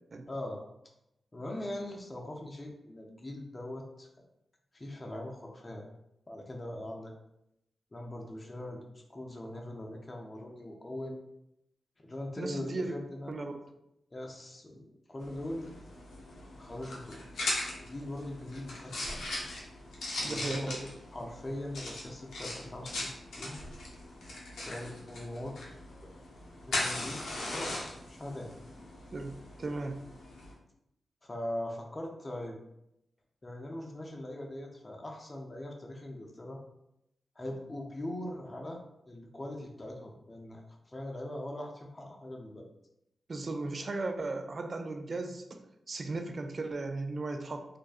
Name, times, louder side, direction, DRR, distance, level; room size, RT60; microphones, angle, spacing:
voice 1, 0.3-0.6 1.3-4.1 4.7-5.9 6.3-7.1 7.9-8.8 9.1-11.3 12.0-13.5 14.1-15.7 16.6-17.3 17.8-19.2 20.2-23.6 24.6-25.6 26.7-28.5 31.2-32.6 33.4-36.6 37.4-40.6 40.9-42.7, left 1 dB, 35° left, 1 dB, 0.5 m, -41 dB
voice 2, 12.4-12.9 13.3-13.7 20.2-20.8 29.1-30.0 43.3-47.7, right 3 dB, 55° right, 6 dB, 0.3 m, -36 dB
sound 1, 15.2-30.5, left 1 dB, 85° left, 0.6 m, -40 dB
2.5 x 2.2 x 2.4 m, 0.82 s
supercardioid pair, 45°, 0 cm